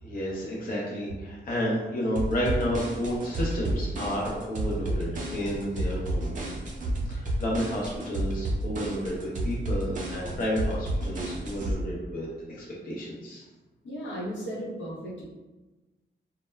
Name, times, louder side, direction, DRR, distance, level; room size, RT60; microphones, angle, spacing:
voice 1, 0.0-6.5 7.1-13.4, equal, 50° left, -5 dB, 0.6 m, -31 dB
sound 1, 2.2-11.8, right 1 dB, 45° right, 0.5 m, -31 dB
voice 2, 13.8-15.2, equal, 90° left, -6 dB, 0.9 m, -35 dB
2.2 x 2.1 x 3.1 m, 1.1 s
wide cardioid pair, 150°, 19 cm